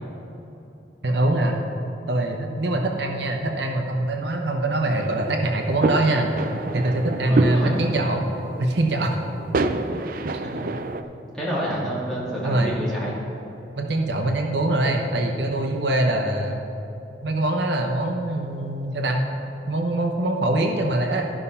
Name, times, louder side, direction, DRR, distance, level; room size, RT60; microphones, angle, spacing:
voice 1, 1.0-1.7 2.1-6.3 6.7-8.3 8.6-9.2 10.3-10.4 12.4-12.9 13.8-16.6 17.2-19.2 19.7-21.3, right 1 dB, 70° right, 3 dB, 0.9 m, -23 dB
sound 1, 4.9-11.0, right 2 dB, 50° right, 0.4 m, -28 dB
voice 2, 7.2-7.8 10.4-10.6 11.3-13.2, equal, 5° left, -7 dB, 2.4 m, -28 dB
13.5 x 5.5 x 5.5 m, 3.0 s
head